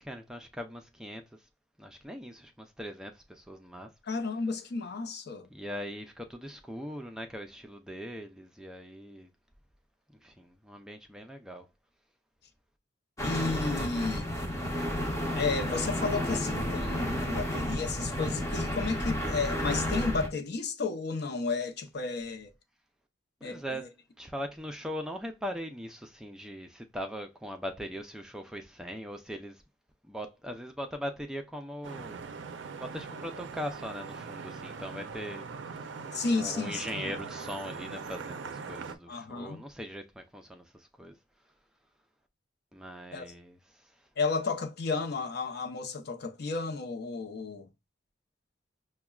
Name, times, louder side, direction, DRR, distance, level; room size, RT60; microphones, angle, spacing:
voice 1, 0.0-1.5 1.8-3.9 5.5-9.3 10.2-11.7 23.4-23.8 24.2-29.6 30.0-32.3 32.7-36.1 36.4-41.2 42.7-44.1, equal, 5° right, 0.3 m, -40 dB
voice 2, 4.0-5.5 13.2-14.3 15.3-22.5 23.4-23.6 36.1-37.1 39.1-39.6 43.1-43.3 44.2-47.7, left 4 dB, 60° left, 0.6 m, -32 dB
sound 1, 13.2-20.3, equal, 15° left, 0.7 m, -31 dB
Vehicle horn car horn honking / Traffic noise roadway noise, 31.8-39.0, right 5 dB, 70° right, 0.4 m, -41 dB
5.7 x 2.1 x 2.3 m
head